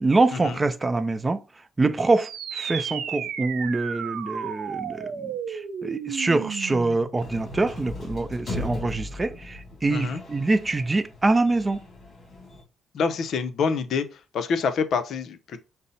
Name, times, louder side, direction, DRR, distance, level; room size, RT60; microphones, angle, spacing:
voice 1, 0.0-1.4 1.8-11.8, right 3 dB, 25° right, 0.4 m, -25 dB
sound 1, 2.1-7.2, right 8 dB, 80° right, 0.5 m, -33 dB
sound 2, 7.2-12.6, left 2 dB, 45° left, 2.6 m, -38 dB
voice 2, 9.9-10.2 12.9-14.1 14.3-15.6, left 5 dB, 65° left, 0.6 m, -26 dB
5.4 x 2.0 x 4.0 m
cardioid pair, 90°, 0 cm